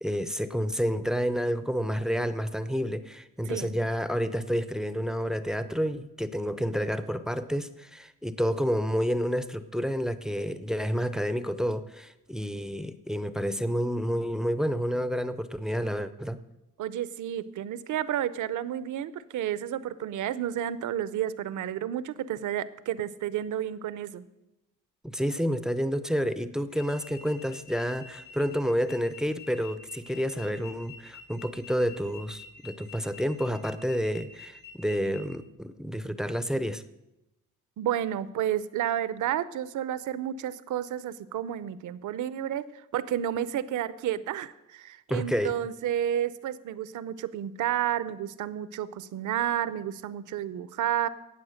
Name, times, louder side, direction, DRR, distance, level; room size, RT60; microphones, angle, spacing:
voice 1, 0.0-16.4 25.0-36.8 45.1-45.5, equal, ahead, 12 dB, 0.6 m, -29 dB
voice 2, 16.8-24.2 37.8-42.7 42.9-51.1, right 11 dB, 70° right, 16 dB, 0.7 m, -31 dB
sound 1, 26.7-35.2, left 7 dB, 75° left, 5.6 m, -48 dB
18.0 x 7.2 x 6.4 m, 0.95 s
cardioid pair, 115°, 32 cm